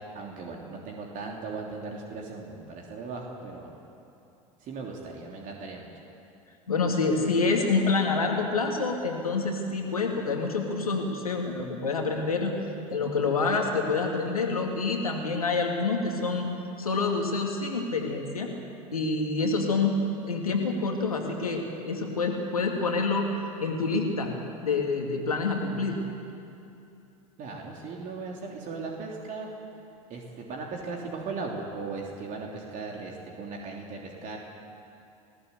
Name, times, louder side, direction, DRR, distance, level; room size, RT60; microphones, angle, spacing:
voice 1, 0.1-3.8 4.6-5.9 27.4-29.5 30.1-34.4, right 4 dB, 45° right, -1 dB, 3.1 m, -37 dB
voice 2, 6.7-12.5 12.9-16.5 16.8-18.5 18.9-23.3 23.6-24.3 24.6-26.0, left 3 dB, 90° left, 2 dB, 2.3 m, -27 dB
20.5 x 17.0 x 8.2 m, 2.7 s
hypercardioid pair, 80°, 18 cm